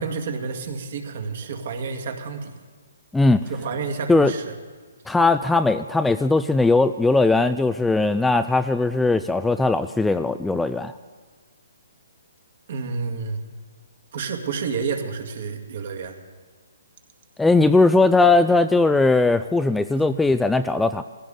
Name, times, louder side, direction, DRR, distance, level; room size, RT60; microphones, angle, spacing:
voice 1, 0.0-2.6 3.5-4.4 12.7-13.4 14.1-16.1 20.0-20.1, right 5 dB, 55° right, 4 dB, 2.0 m, -30 dB
voice 2, 3.1-3.4 4.1-4.3 5.1-10.9 17.4-21.0, left 3 dB, 5° left, 10 dB, 0.3 m, -19 dB
20.0 x 16.0 x 3.8 m, 1.4 s
hypercardioid pair, 145°, 0 cm